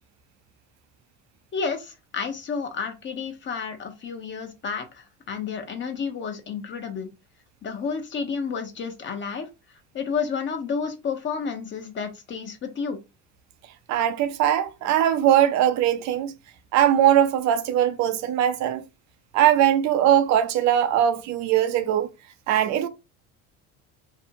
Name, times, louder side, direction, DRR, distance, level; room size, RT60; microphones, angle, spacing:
voice 1, 1.5-7.1 7.6-9.5 9.9-13.0, left 5 dB, 35° left, 0.8 m, -31 dB
voice 2, 13.9-16.3 16.7-18.8 19.3-22.1 22.5-22.9, right 10 dB, 60° right, 0.5 m, -20 dB
2.6 x 2.1 x 2.6 m
supercardioid pair, 85°, 32 cm